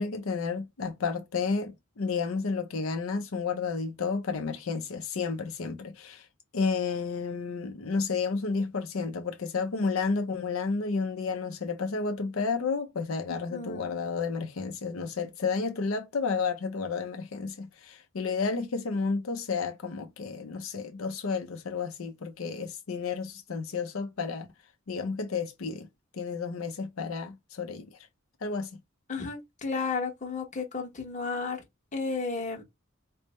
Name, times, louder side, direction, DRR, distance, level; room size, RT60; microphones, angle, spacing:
voice 1, 0.0-6.2 6.5-24.5 24.9-25.9 26.1-27.9 28.4-28.7, left 4 dB, 85° left, 0.6 m, -31 dB
voice 2, 13.3-14.0 29.1-31.6 31.9-32.6, left 4 dB, 35° left, 1.1 m, -33 dB
3.3 x 2.1 x 4.2 m
head